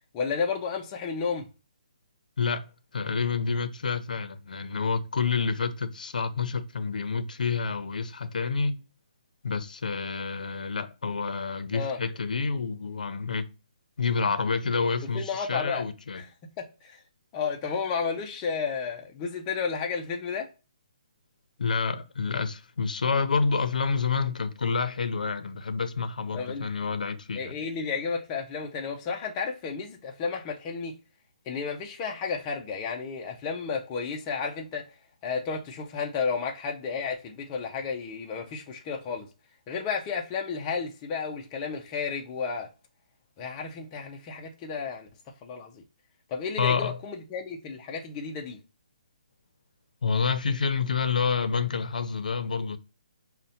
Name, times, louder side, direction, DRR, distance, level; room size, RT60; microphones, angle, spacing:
voice 1, 0.1-1.5 11.7-12.0 15.1-15.9 16.1-16.3 16.6-17.0 17.3-20.5 26.3-26.7 27.3-31.0 31.5-34.9 35.2-39.3 39.7-42.7 43.4-45.1 45.4-45.8 46.3-48.6, left 5 dB, 15° left, 0.3 m, -32 dB
voice 2, 2.4-8.8 9.4-13.5 14.0-16.2 21.6-27.6 46.6-47.0 50.0-52.8, left 5 dB, 80° left, 0.5 m, -28 dB
5.2 x 2.1 x 2.7 m
hypercardioid pair, 175°, 4 cm